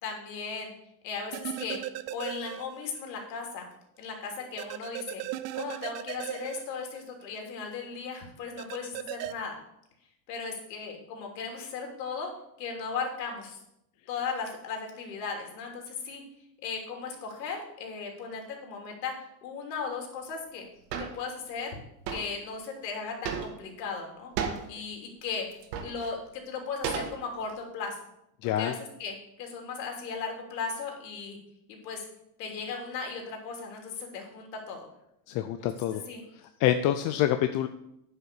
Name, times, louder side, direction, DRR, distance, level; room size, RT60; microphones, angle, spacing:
voice 1, 0.0-0.7 1.0-1.8 2.1-3.7 4.0-5.2 5.5-9.5 10.3-12.3 12.6-13.6 14.1-16.2 16.6-19.1 19.4-20.6 21.0-21.7 22.1-24.3 24.7-25.5 25.8-27.9 28.6-28.7 29.0-31.4 31.8-32.1 32.4-34.9 36.1-36.2, left 5 dB, 80° left, 2 dB, 3.2 m, -36 dB
sound 1, 1.3-3.0 3.3-3.4 4.6-7.4 8.6-9.3, right 14 dB, 35° right, 0.4 m, -37 dB
sound 2, 20.9-21.2 22.1-22.3 23.2-23.7 24.4-24.7 25.5-26.1 26.8-27.5, right 7 dB, 80° right, 1.8 m, -33 dB
voice 2, 28.4-28.8 35.3-36.0 36.6-37.7, left 11 dB, 40° left, 8 dB, 0.6 m, -26 dB
9.7 x 5.5 x 6.8 m, 0.79 s
supercardioid pair, 130°, 49 cm